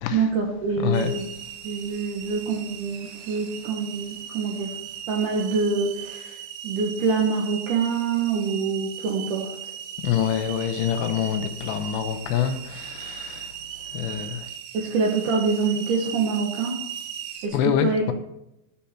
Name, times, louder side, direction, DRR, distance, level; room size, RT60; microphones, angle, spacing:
voice 1, 0.1-1.2 1.6-4.7 5.1-6.4 6.6-9.5 14.7-16.8 17.4-18.0, right 5 dB, 65° right, 2.1 m, -25 dB
voice 2, 0.8-1.2 3.0-3.3 10.0-13.6 13.8-14.5 17.5-18.1, left 9 dB, 80° left, 3.0 m, -26 dB
sound 1, 0.9-17.5, right 9 dB, 85° right, 3.2 m, -38 dB
13.0 x 7.0 x 4.4 m
omnidirectional pair, 5.1 m